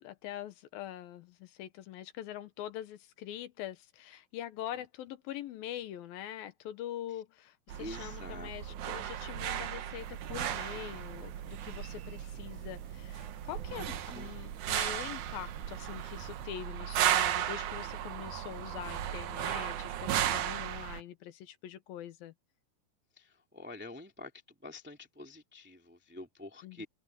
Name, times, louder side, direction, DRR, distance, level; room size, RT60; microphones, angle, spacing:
voice 1, 0.0-22.3 26.6-26.9, left 11 dB, 75° left, 2.8 m, -44 dB
sound 1, 7.7-21.0, right 11 dB, 65° right, 2.2 m, -35 dB
voice 2, 7.8-8.9 14.1-14.6 23.2-26.8, left 2 dB, 5° right, 1.6 m, -47 dB
sound 2, 10.0-16.5, right 12 dB, 85° right, 3.1 m, -48 dB
open air
omnidirectional pair, 4.4 m